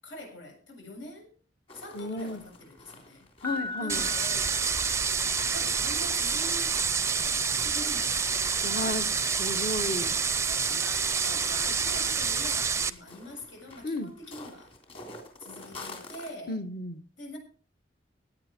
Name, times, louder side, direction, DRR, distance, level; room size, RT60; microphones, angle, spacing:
voice 1, 0.0-1.3 1.7-3.3 3.8-4.6 5.5-6.8 7.2-8.4 8.8-9.6 10.5-14.7 15.4-16.6 17.2-17.4, left 1 dB, 80° left, 2 dB, 7.3 m, -44 dB
sound 1, 1.7-16.3, left 2 dB, 30° left, 3.4 m, -50 dB
voice 2, 1.9-2.4 3.4-4.1 8.6-10.2 13.8-14.1 16.5-17.0, left 1 dB, 50° left, 8 dB, 1.5 m, -33 dB
Piano, 3.4-5.5, left 3 dB, 10° left, 0.8 m, -39 dB
sound 2, 3.9-12.9, right 5 dB, 15° right, 0.5 m, -28 dB
17.5 x 9.5 x 4.5 m, 0.38 s
head